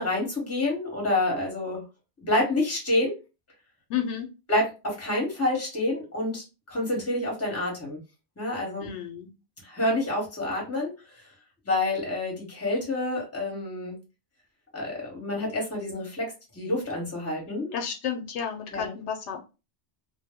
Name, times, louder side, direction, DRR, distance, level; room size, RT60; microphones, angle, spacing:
voice 1, 0.0-1.8 2.2-3.1 4.5-8.0 8.4-8.9 9.6-10.9 11.6-13.9 14.7-16.3 16.5-17.7 18.7-18.9, left 1 dB, 15° left, -1 dB, 1.0 m, -28 dB
voice 2, 3.9-4.3 8.8-9.3 17.7-19.5, left 8 dB, 80° left, 4 dB, 0.9 m, -31 dB
2.1 x 2.1 x 3.4 m, 0.29 s
omnidirectional pair, 1.1 m